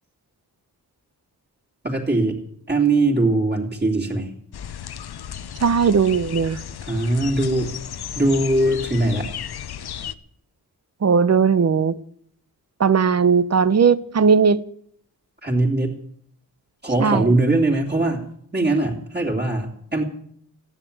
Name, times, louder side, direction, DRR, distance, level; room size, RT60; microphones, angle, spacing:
voice 1, 1.8-2.4 2.7-4.3 6.8-7.7 8.1-9.3 15.4-15.9 16.8-18.2 18.5-20.0, right 2 dB, 25° right, 2.9 m, -21 dB
sound 1, 4.5-10.1, left 9 dB, 80° left, 0.9 m, -34 dB
voice 2, 5.6-6.6 11.0-12.0 12.8-14.6 17.0-17.3, right 6 dB, 45° right, 0.8 m, -18 dB
15.0 x 10.5 x 8.8 m
wide cardioid pair, 155°, 38 cm